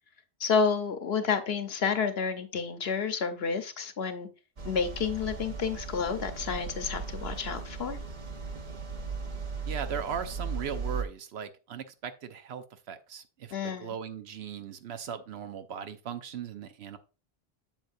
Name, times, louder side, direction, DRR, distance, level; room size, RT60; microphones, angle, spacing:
voice 1, 0.4-4.3 4.6-8.0 13.5-13.9, left 5 dB, 70° left, 9 dB, 1.1 m, -30 dB
sound 1, 4.6-11.0, right 4 dB, 45° right, 1.1 m, -37 dB
voice 2, 9.6-17.0, right 7 dB, 75° right, 9 dB, 0.9 m, -38 dB
7.8 x 7.4 x 2.6 m, 0.32 s
omnidirectional pair, 1.1 m